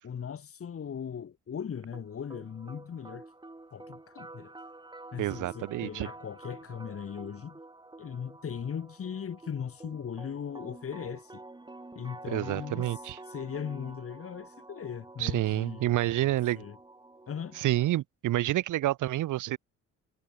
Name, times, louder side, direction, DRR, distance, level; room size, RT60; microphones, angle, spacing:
voice 1, 0.0-3.3 3.7-4.5 5.1-7.6 8.0-11.4 11.9-15.9 16.3-16.8 17.3-17.6, left 7 dB, 50° left, 3.3 m, -39 dB
sound 1, 1.9-17.9, right 2 dB, 15° right, 3.7 m, -49 dB
voice 2, 5.2-6.1 12.3-13.2 15.2-16.6 17.6-19.6, right 15 dB, 80° right, 1.9 m, -28 dB
cardioid pair, 90°, 30 cm